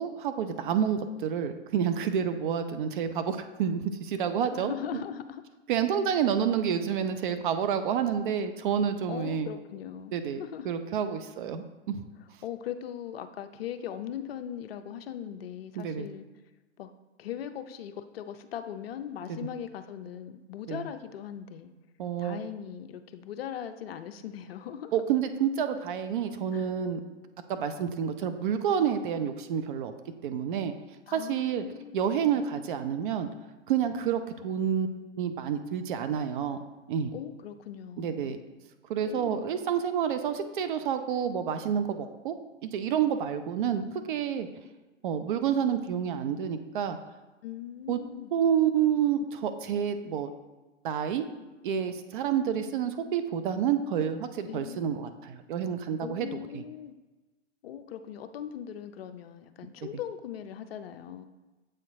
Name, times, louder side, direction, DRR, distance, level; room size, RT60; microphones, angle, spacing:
voice 1, 0.0-4.7 5.7-9.5 10.1-12.0 15.8-16.1 19.3-19.4 20.7-20.9 22.0-22.4 24.9-27.0 27.5-29.9 30.2-30.7 31.1-31.6 31.9-33.3 33.7-36.6 36.9-37.1 38.0-38.4 38.9-42.3 42.6-44.5 45.0-47.0 47.9-48.0 48.3-50.3 50.8-51.3 51.6-56.6, right 8 dB, 45° right, 9 dB, 0.5 m, -29 dB
voice 2, 4.5-5.4 9.1-10.1 10.4-10.7 12.4-16.3 16.8-16.9 17.2-21.7 22.2-24.9 26.5-26.7 31.1-32.0 37.1-38.3 39.1-39.5 47.4-48.3 54.4-55.0 56.0-56.9 57.6-61.3, left 9 dB, 55° left, 10 dB, 0.6 m, -39 dB
7.7 x 4.4 x 3.6 m, 1.1 s
hypercardioid pair, 120°, 36 cm